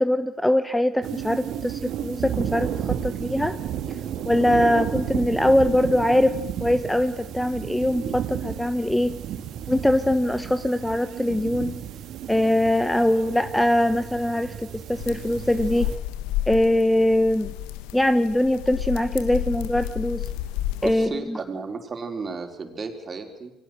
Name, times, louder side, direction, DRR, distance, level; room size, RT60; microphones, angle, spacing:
voice 1, 0.0-3.5 4.3-9.2 9.7-11.8 12.3-15.9 16.5-17.5 17.9-20.3 20.8-21.4, left 1 dB, 5° left, 12 dB, 1.2 m, -22 dB
sound 1, 1.0-16.0, right 9 dB, 55° right, 2.3 m, -32 dB
sound 2, 15.0-21.1, left 13 dB, 65° left, 1.3 m, -31 dB
voice 2, 20.8-23.5, right 4 dB, 35° right, 4 dB, 4.7 m, -33 dB
29.5 x 23.5 x 6.6 m, 0.91 s
figure-of-eight pair, 50°, 0 cm